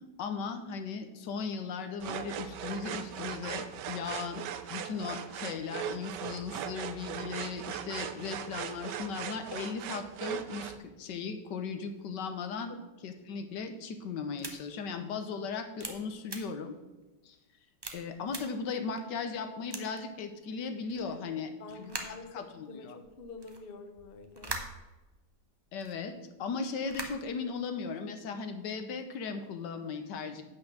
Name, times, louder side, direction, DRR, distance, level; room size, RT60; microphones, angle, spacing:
voice 1, 0.2-4.4 4.7-12.8 13.0-16.7 17.2-17.4 17.9-23.0 25.7-30.4, left 5 dB, 75° left, 8 dB, 1.5 m, -37 dB
sound 1, 2.0-10.8, right 9 dB, 75° right, 1.3 m, -39 dB
sound 2, 14.4-14.5 15.1-15.2 15.8-15.9 16.2-16.4 17.0-17.1 17.8-17.9 18.3-18.4 19.0-19.1 19.7-20.0 20.9-21.0 21.7-22.2 23.0-25.3 25.7-25.9 26.7-27.4, right 2 dB, 25° right, 0.6 m, -41 dB
voice 2, 21.1-24.6, left 4 dB, 45° left, 7 dB, 0.8 m, -48 dB
8.7 x 6.1 x 6.1 m, 1.1 s
omnidirectional pair, 1.9 m